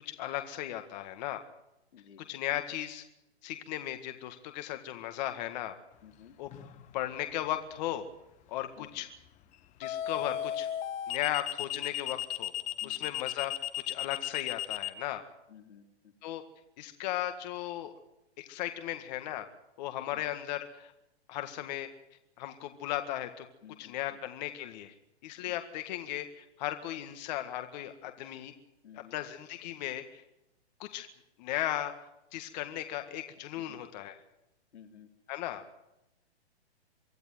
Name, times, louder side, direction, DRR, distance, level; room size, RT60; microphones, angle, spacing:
voice 1, 0.2-1.4 2.3-3.0 3.4-5.7 6.4-6.5 6.9-8.0 8.5-9.1 9.8-10.7 11.1-12.5 12.8-13.5 13.9-15.2 16.2-16.4 16.8-17.9 18.4-19.5 19.8-20.9 21.3-21.9 22.4-23.5 23.8-24.9 25.2-28.5 28.9-30.2 30.8-31.1 31.4-31.9 32.3-34.2 35.3-35.6, left 13 dB, 40° left, 7 dB, 1.8 m, -36 dB
voice 2, 1.9-2.2 6.0-6.4 8.8-9.1 12.8-13.1 15.5-16.1 20.1-20.4 23.6-24.0 25.5-25.6 28.8-29.2 33.6-33.8 34.7-35.1, left 8 dB, 75° left, 4 dB, 3.5 m, -54 dB
sound 1, 6.5-6.9 9.8-14.9, left 11 dB, 20° left, 1.3 m, -34 dB
25.0 x 14.0 x 9.4 m, 0.87 s
hypercardioid pair, 145°, 34 cm